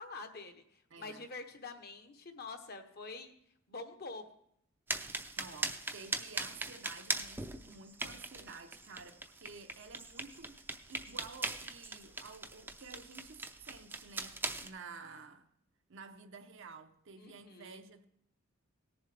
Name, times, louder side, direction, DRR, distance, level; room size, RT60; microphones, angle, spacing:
voice 1, 0.0-3.3 3.7-4.2 17.2-17.8, left 3 dB, 45° left, 1.0 m, -46 dB
voice 2, 0.9-1.3 5.4-15.5 15.9-18.1, right 4 dB, 60° right, 0.7 m, -52 dB
sound 1, 4.9-14.7, right 2 dB, 10° right, 0.5 m, -41 dB
18.0 x 7.1 x 3.3 m
head